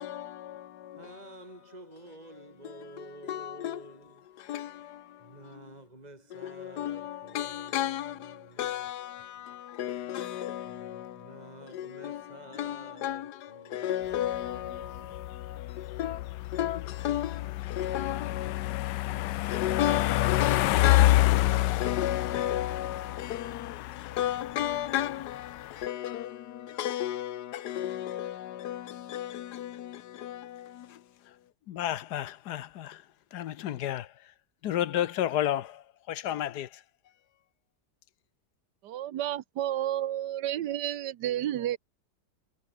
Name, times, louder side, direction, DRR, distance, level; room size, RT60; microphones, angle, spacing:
voice 1, 0.0-1.1 2.7-3.8 4.4-5.6 6.3-31.0 31.7-33.0 33.3-34.1 34.6-36.8, left 12 dB, 75° left, 1.4 m, -34 dB
voice 2, 0.9-4.4 5.2-8.7 10.6-15.2, right 2 dB, 25° right, 3.1 m, -50 dB
sound 1, 14.1-25.8, left 17 dB, 90° left, 1.2 m, -28 dB
voice 3, 38.8-41.8, right 12 dB, 75° right, 1.5 m, -31 dB
omnidirectional pair, 1.8 m